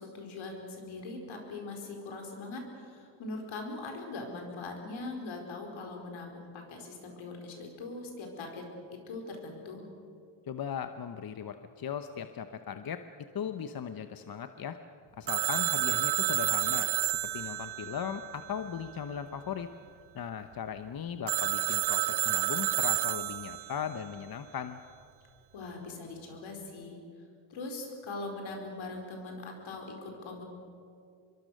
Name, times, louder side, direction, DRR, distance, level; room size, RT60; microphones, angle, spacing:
voice 1, 0.0-8.6 8.9-9.9 25.5-27.0 27.5-30.4, left 3 dB, 75° left, 2 dB, 4.9 m, -41 dB
voice 2, 10.5-13.0 13.3-14.8 15.2-19.7 20.1-24.8, left 8 dB, 50° left, 9 dB, 1.0 m, -38 dB
Telephone, 15.3-18.9 21.3-23.8, right 15 dB, 55° right, 0.5 m, -30 dB
25.5 x 23.0 x 6.6 m, 2.5 s
cardioid pair, 90°, 47 cm